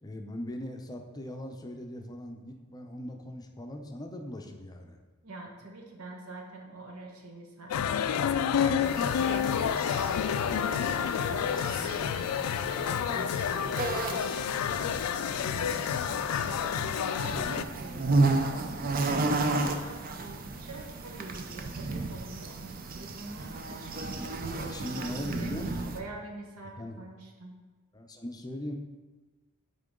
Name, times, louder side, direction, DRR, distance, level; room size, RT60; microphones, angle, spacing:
voice 1, 0.0-5.0 24.6-26.0 26.8-27.0 27.9-28.8, left 1 dB, 15° left, 4 dB, 0.5 m, -39 dB
voice 2, 5.2-14.6 15.4-18.0 18.3-22.6 22.9-25.5 25.9-27.6, right 2 dB, 75° right, 1 dB, 1.2 m, -46 dB
sound 1, 7.7-17.6, left 8 dB, 75° left, 0.3 m, -29 dB
sound 2, 8.8-26.0, right 3 dB, 40° right, 0.5 m, -33 dB
9.0 x 3.8 x 3.7 m, 1.3 s
head